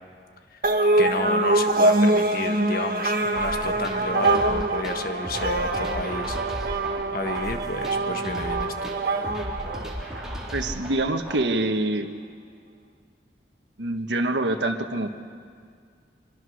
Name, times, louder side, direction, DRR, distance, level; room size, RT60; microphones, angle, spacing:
sound 1, 0.6-10.4, right 2 dB, 55° right, 1.8 m, -24 dB
voice 1, 1.0-6.4 7.1-8.9, left 2 dB, 55° left, 6 dB, 1.5 m, -31 dB
sound 2, 3.3-11.3, equal, 5° right, 3.5 m, -36 dB
voice 2, 10.5-12.1 13.8-15.2, right 2 dB, 85° right, 5 dB, 1.5 m, -25 dB
26.0 x 24.0 x 6.5 m, 2.1 s
head